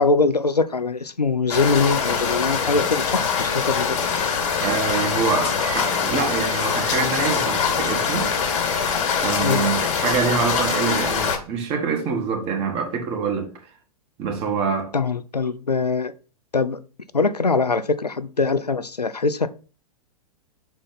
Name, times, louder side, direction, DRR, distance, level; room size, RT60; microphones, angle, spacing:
voice 1, 0.0-4.0 9.4-9.6 14.9-16.1 16.5-16.8 17.1-19.5, left 4 dB, 90° left, 0.5 m, -22 dB
sound 1, 1.5-11.4, left 6 dB, 55° left, 1.5 m, -23 dB
voice 2, 4.6-8.3 9.2-13.5 14.2-14.9, right 5 dB, 30° right, 1.5 m, -25 dB
6.2 x 4.4 x 4.0 m
figure-of-eight pair, 105°, 20 cm